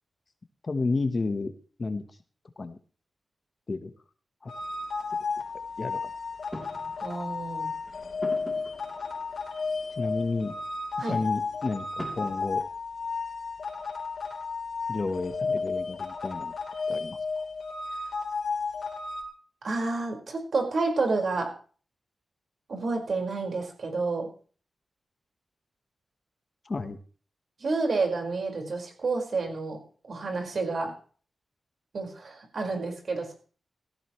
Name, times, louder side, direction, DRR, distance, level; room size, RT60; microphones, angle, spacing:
voice 1, 0.6-1.5 1.8-2.2 2.6-2.8 3.7-3.9 4.4-4.5 5.8-6.1 10.0-10.5 11.1-12.6 14.9-16.5 16.9-17.5 26.6-27.0, left 3 dB, 35° left, 9 dB, 1.2 m, -31 dB
sound 1, 4.4-12.4, equal, 5° right, 3.3 m, -47 dB
sound 2, 4.5-19.2, left 4 dB, 60° left, 3.8 m, -33 dB
voice 2, 7.0-7.7 11.0-11.2 19.6-21.5 22.7-24.3 27.6-29.8 30.1-30.9 31.9-33.3, right 3 dB, 50° right, 2 dB, 5.1 m, -29 dB
17.5 x 14.5 x 3.2 m, 0.40 s
wide cardioid pair, 155°, 0 cm